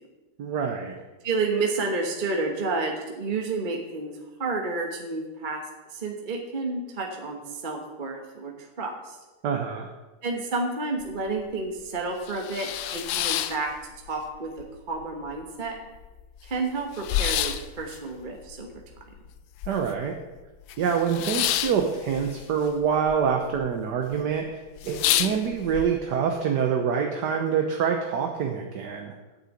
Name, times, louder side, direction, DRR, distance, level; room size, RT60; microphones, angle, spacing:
voice 1, 0.4-1.0 9.4-9.9 19.7-20.1 20.8-24.6 24.9-29.1, right 7 dB, 60° right, 3 dB, 1.3 m, -26 dB
voice 2, 1.2-5.6 5.9-8.5 8.8-9.2 10.2-15.8 16.4-18.7 24.8-25.3, right 3 dB, 30° right, 1 dB, 1.0 m, -30 dB
sound 1, 11.0-11.1 11.5-11.6 12.1-14.3 14.6-15.3 15.7-15.8 15.9-20.1 20.4-23.2 23.4-24.0 24.4-24.5 24.8-25.8, left 12 dB, 75° left, 1.3 m, -29 dB
9.4 x 6.7 x 7.9 m, 1.2 s
omnidirectional pair, 2.4 m